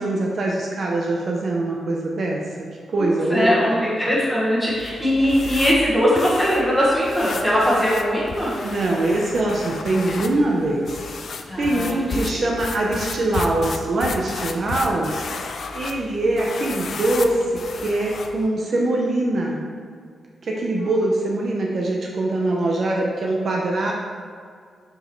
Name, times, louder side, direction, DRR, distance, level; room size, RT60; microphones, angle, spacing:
voice 1, 0.0-2.4 2.9-3.5 8.6-10.9 11.6-15.5 15.7-19.6 20.4-23.9, right 2 dB, 45° right, -2 dB, 0.6 m, -23 dB
voice 2, 3.0-8.6 10.1-10.2 11.5-12.4, equal, 5° left, -6 dB, 1.3 m, -21 dB
sound 1, 4.7-18.5, left 4 dB, 50° left, 0.3 m, -34 dB
6.3 x 5.0 x 3.1 m, 2.1 s
wide cardioid pair, 175°, 0 cm